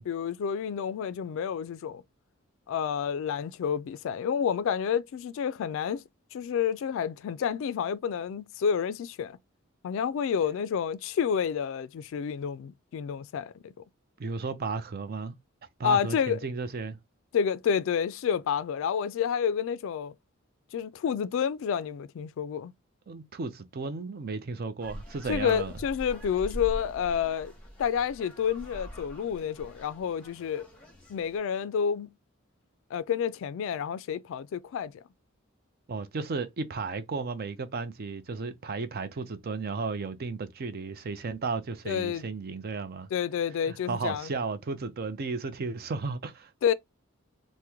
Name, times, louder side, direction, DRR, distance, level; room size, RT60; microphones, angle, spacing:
voice 1, 0.0-2.0 2.7-6.0 6.3-9.4 9.8-13.7 15.8-16.4 17.3-20.1 20.7-22.7 25.3-27.5 27.8-30.7 31.1-32.1 32.9-35.0 41.9-42.3 43.1-44.3 46.6-46.7, left 7 dB, 65° left, 0.3 m, -29 dB
voice 2, 14.2-15.3 15.8-17.0 23.1-25.7 35.9-43.1 43.6-46.5, right 4 dB, 50° right, 0.5 m, -34 dB
sound 1, 24.8-31.4, equal, 5° left, 1.0 m, -43 dB
3.0 x 2.1 x 3.5 m
head